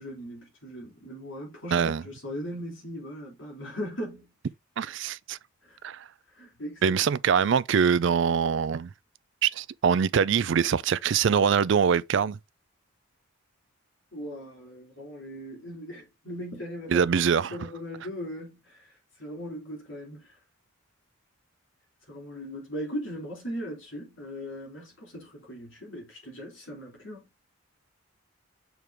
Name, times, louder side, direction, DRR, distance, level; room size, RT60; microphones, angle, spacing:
voice 1, 0.0-4.3 5.6-5.8 6.4-7.0 14.1-18.8 19.2-20.3 22.1-27.3, equal, 60° left, 3.6 m, -39 dB
voice 2, 1.7-2.0 4.8-5.4 5.8-6.0 6.8-8.9 9.4-12.4 16.9-17.5, right 7 dB, 60° right, 0.4 m, -23 dB
6.7 x 4.6 x 3.5 m
head